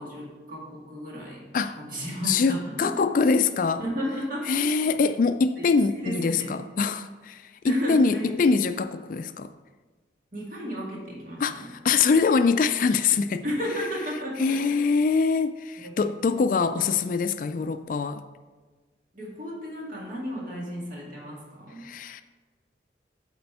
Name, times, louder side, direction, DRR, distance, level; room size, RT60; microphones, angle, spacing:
voice 1, 0.0-1.5 1.7-2.9 3.8-4.7 5.6-5.7 6.0-6.5 7.6-8.4 10.3-11.7 13.4-14.8 15.8-16.1 19.1-21.9, equal, 50° right, 2.1 m, -33 dB
voice 2, 2.2-3.8 4.5-9.5 11.4-13.4 14.4-18.2 21.8-22.2, left 4 dB, 50° left, 0.3 m, -24 dB
8.3 x 4.3 x 5.7 m
head